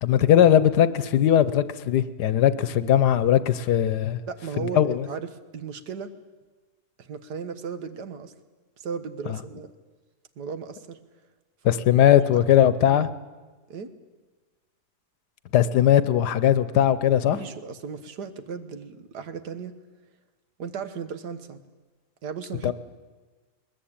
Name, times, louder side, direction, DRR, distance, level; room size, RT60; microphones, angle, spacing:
voice 1, 0.0-4.2 4.6-5.1 9.3-9.4 11.6-13.1 15.5-17.4 22.6-22.7, left 10 dB, 90° left, 1.5 m, -19 dB
voice 2, 4.3-6.1 7.0-8.3 8.8-9.7 10.4-11.0 12.3-12.4 12.8-13.0 13.7-13.9 17.3-19.7 20.6-21.6 22.2-22.7, right 6 dB, 85° right, 1.9 m, -36 dB
21.0 x 20.5 x 8.7 m
omnidirectional pair, 1.7 m